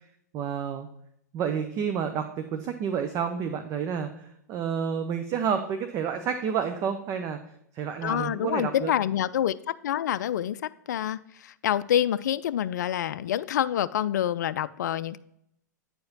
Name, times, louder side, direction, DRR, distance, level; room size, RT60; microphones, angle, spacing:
voice 1, 0.3-0.9 1.3-7.4 7.7-8.9, right 7 dB, 35° right, 8 dB, 0.6 m, -30 dB
voice 2, 8.0-15.2, left 10 dB, 70° left, 14 dB, 0.4 m, -27 dB
9.2 x 4.8 x 4.0 m, 0.75 s
hypercardioid pair, 105°, 10 cm